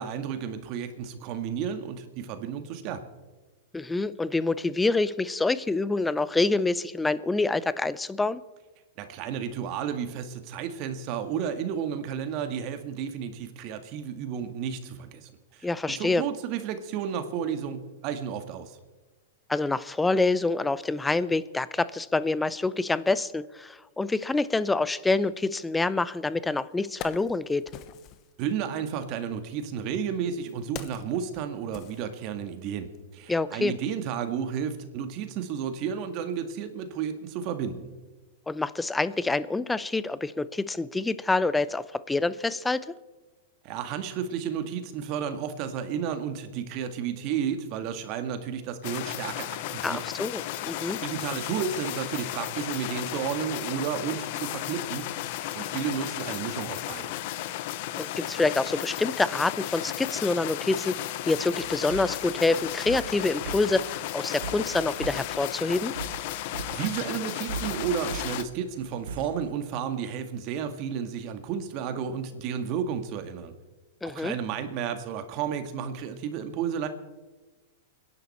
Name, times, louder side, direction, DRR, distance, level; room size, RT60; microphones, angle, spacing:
voice 1, 0.0-3.0 9.0-18.8 28.4-37.9 43.6-50.0 50.5-50.6 51.0-55.1 55.5-57.1 66.7-73.5 74.0-76.9, right 8 dB, 45° right, 8 dB, 2.0 m, -32 dB
voice 2, 3.7-8.4 15.6-16.2 19.5-27.7 33.3-33.7 38.5-42.8 49.8-51.0 57.9-61.0 61.2-65.9 74.0-74.3, left 3 dB, 10° left, 17 dB, 0.7 m, -26 dB
Wood, 26.2-26.3 26.7-28.3 29.3-32.6 32.9-33.1, left 10 dB, 40° left, 1.1 m, -44 dB
sound 1, 48.8-68.4, left 14 dB, 55° left, 0.7 m, -34 dB
sound 2, 53.5-69.5, right 5 dB, 80° right, 1.3 m, -43 dB
29.0 x 11.0 x 4.4 m, 1.2 s
hypercardioid pair, 115°, 0 cm